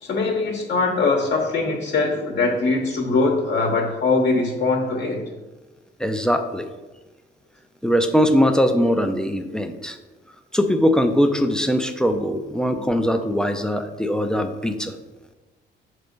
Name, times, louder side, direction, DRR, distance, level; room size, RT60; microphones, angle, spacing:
voice 1, 0.0-5.3 12.7-12.8, left 3 dB, 55° left, 0 dB, 1.0 m, -22 dB
voice 2, 6.0-6.7 7.8-10.0 10.5-14.9, equal, 5° left, 6 dB, 0.5 m, -21 dB
6.1 x 3.3 x 5.2 m, 1.2 s
cardioid pair, 90°, 20 cm